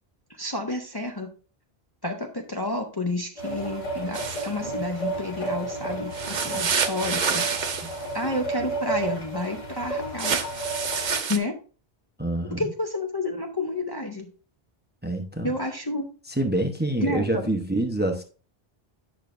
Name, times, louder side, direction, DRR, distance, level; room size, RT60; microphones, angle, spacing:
voice 1, 0.3-1.3 2.0-7.5 8.1-10.4 11.3-11.6 12.5-14.3 15.4-16.1 17.0-17.6, left 2 dB, 25° left, 2 dB, 0.7 m, -30 dB
sound 1, 3.4-11.2, right 2 dB, 85° left, 2.5 m, -32 dB
sound 2, 4.1-4.5 6.1-8.1 10.2-11.4, right 6 dB, 50° right, 0.8 m, -27 dB
voice 2, 12.2-12.7 15.0-15.5 16.4-18.2, right 1 dB, 10° right, 4 dB, 0.7 m, -26 dB
8.8 x 6.0 x 2.5 m, 0.37 s
omnidirectional pair, 1.1 m